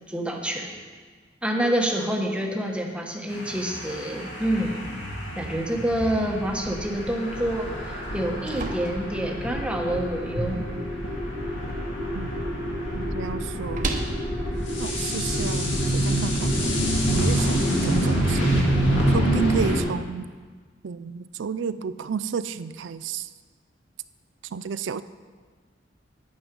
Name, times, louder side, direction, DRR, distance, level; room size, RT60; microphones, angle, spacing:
voice 1, 0.1-0.8 1.4-5.0 5.3-10.6, right 1 dB, 5° right, 1 dB, 1.1 m, -27 dB
sound 1, 3.3-19.8, equal, 75° left, 2.3 m, -26 dB
sound 2, 8.0-16.0, right 2 dB, 45° right, 1.1 m, -39 dB
voice 2, 13.0-14.0 14.8-16.7 17.1-18.5 19.1-20.3 20.8-23.3 24.5-25.0, right 6 dB, 80° right, 14 dB, 0.4 m, -31 dB
11.0 x 8.6 x 5.2 m, 1.5 s
head